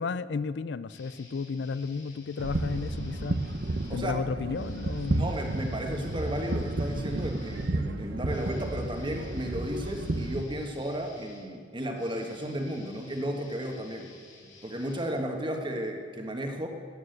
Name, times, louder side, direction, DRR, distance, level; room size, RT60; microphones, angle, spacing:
voice 1, 0.0-3.4 3.9-5.3, left 4 dB, 65° left, 16 dB, 0.4 m, -33 dB
sound 1, 0.9-4.0 4.5-15.7, left 3 dB, 80° left, 2.8 m, -53 dB
sound 2, 2.4-10.4, right 2 dB, 55° right, 0.8 m, -32 dB
voice 2, 5.1-14.1 14.6-16.7, equal, 25° right, 4 dB, 1.4 m, -34 dB
14.0 x 9.8 x 7.9 m, 2.1 s
head